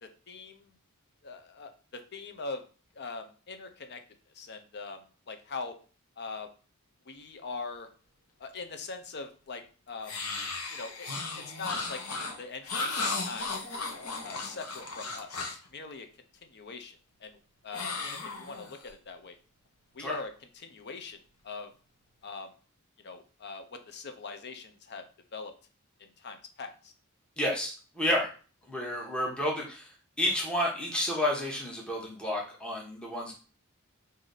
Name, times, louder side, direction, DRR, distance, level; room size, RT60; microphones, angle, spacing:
voice 1, 0.0-0.8 1.2-2.6 2.9-4.0 4.3-5.8 6.2-6.5 7.1-7.9 8.4-10.2 10.7-11.1 11.5-16.1 16.4-19.4 19.9-21.2 21.4-21.7 22.2-22.5 23.0-25.0 25.3-25.5 26.0-26.9, left 4 dB, 50° left, 7 dB, 0.7 m, -42 dB
sound 1, 10.0-15.7 17.7-18.9, left 3 dB, 80° left, 1.0 m, -35 dB
voice 2, 27.4-28.3 28.7-29.9 30.2-33.3, left 1 dB, 5° left, -2 dB, 1.0 m, -30 dB
4.8 x 2.7 x 4.0 m, 0.38 s
head